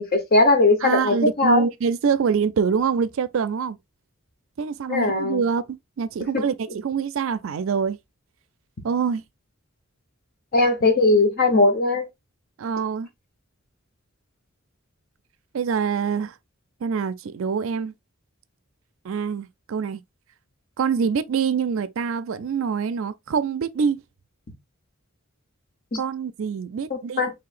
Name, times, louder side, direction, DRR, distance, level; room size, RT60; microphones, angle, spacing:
voice 1, 0.0-1.6 4.9-5.4 10.5-12.0 25.9-26.0 26.9-27.3, left 2 dB, 45° left, 1.0 m, -19 dB
voice 2, 0.8-3.8 4.6-8.0 8.8-9.2 12.6-13.1 15.5-16.3 16.8-17.9 19.0-20.0 20.8-24.0 26.0-27.2, right 6 dB, 70° right, 0.4 m, -25 dB
4.8 x 3.2 x 2.4 m
head